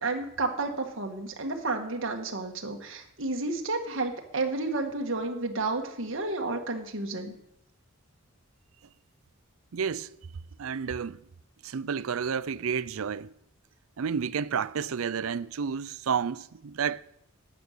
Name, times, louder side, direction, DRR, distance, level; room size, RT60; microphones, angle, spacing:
voice 1, 0.0-7.3, right 3 dB, 65° right, 1.8 m, -31 dB
voice 2, 9.7-10.1 10.6-11.2 11.6-13.3 14.0-17.0, right 6 dB, 85° right, 0.5 m, -30 dB
12.5 x 9.3 x 6.8 m
head